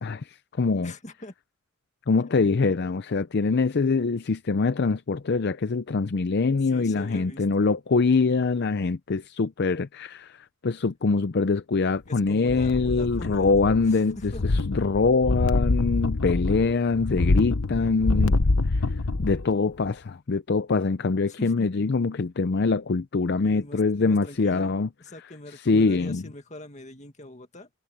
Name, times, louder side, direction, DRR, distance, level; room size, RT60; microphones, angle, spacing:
voice 1, 0.0-0.9 2.1-10.4 10.6-18.4 18.7-18.8 19.2-24.9 25.6-26.2, left 4 dB, 50° left, 0.5 m, -24 dB
voice 2, 0.8-1.3 6.6-7.4 12.1-14.4 21.3-21.7 23.4-24.7 25.0-27.7, left 1 dB, 35° left, 2.1 m, -43 dB
sound 1, 12.5-13.9 14.2-19.5 19.9-20.0, left 2 dB, 80° left, 1.0 m, -25 dB
head